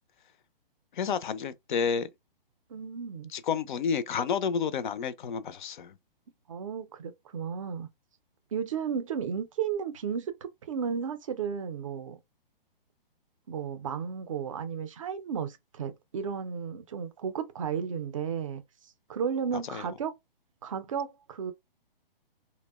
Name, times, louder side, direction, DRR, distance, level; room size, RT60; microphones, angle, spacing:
voice 1, 0.9-2.1 3.3-6.0 19.5-19.9, left 6 dB, 55° left, 0.4 m, -30 dB
voice 2, 2.7-3.3 6.5-7.9 8.5-12.2 13.5-18.6 19.1-20.1 20.6-21.5, right 7 dB, 35° right, 0.4 m, -33 dB
2.7 x 2.0 x 2.2 m
hypercardioid pair, 145°, 29 cm